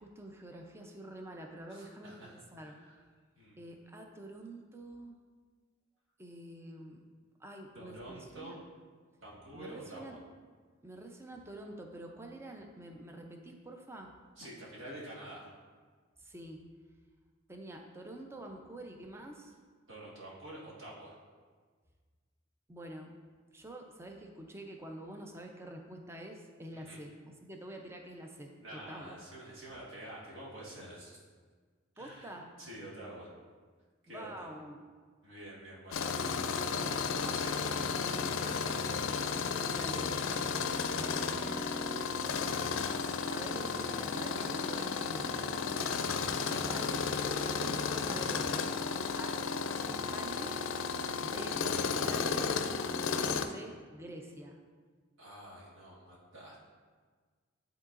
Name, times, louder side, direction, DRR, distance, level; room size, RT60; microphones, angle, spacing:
voice 1, 0.0-2.8 3.6-5.2 6.2-7.0 7.4-8.5 9.5-10.2 10.8-14.1 16.2-16.6 17.5-19.5 22.7-23.1 23.5-29.2 32.0-32.5 34.1-34.8 37.0-37.1 39.7-40.5 41.0-41.7 43.3-45.9 46.5-47.2 47.5-48.7 49.2-49.4 49.9-50.6 51.2-52.5 53.3-54.6, right 1 dB, 15° right, 2 dB, 0.5 m, -47 dB
voice 2, 1.7-3.0 3.3-3.6 7.7-8.6 9.2-10.2 14.4-15.5 19.9-21.2 26.7-27.0 28.6-31.2 31.9-33.3 34.0-34.5 35.2-37.7 38.3-39.0 46.0-46.4 51.2-51.3 55.2-56.7, right 1 dB, 65° right, -6 dB, 1.6 m, -48 dB
Tools, 35.9-53.5, left 5 dB, 80° left, 0.4 m, -33 dB
10.5 x 3.8 x 2.5 m, 1.5 s
head